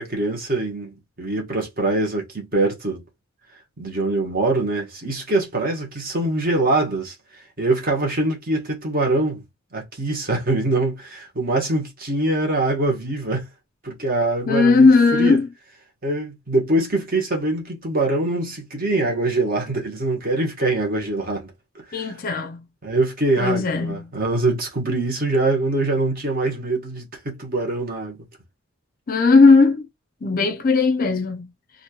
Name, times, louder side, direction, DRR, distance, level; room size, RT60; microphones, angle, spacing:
voice 1, 0.0-3.0 3.8-9.4 9.7-13.5 13.8-14.9 15.1-15.4 16.0-21.5 21.9-22.1 22.8-28.2, right 2 dB, 40° right, 1.3 m, -23 dB
voice 2, 14.5-15.5 21.9-22.6 23.4-24.0 29.1-29.9 30.2-31.5, left 4 dB, 40° left, 0.4 m, -17 dB
2.9 x 2.6 x 2.8 m
head